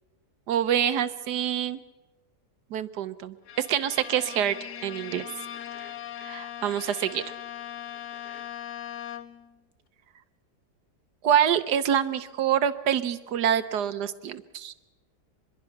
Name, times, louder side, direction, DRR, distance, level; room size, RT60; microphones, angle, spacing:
voice 1, 0.5-1.8 2.7-4.6 4.8-5.2 6.2-7.2 11.2-14.7, right 9 dB, 85° right, 11 dB, 1.5 m, -26 dB
Bowed string instrument, 3.5-9.5, left 10 dB, 80° left, 1.7 m, -39 dB
24.5 x 22.0 x 5.9 m, 1.0 s
omnidirectional pair, 1.7 m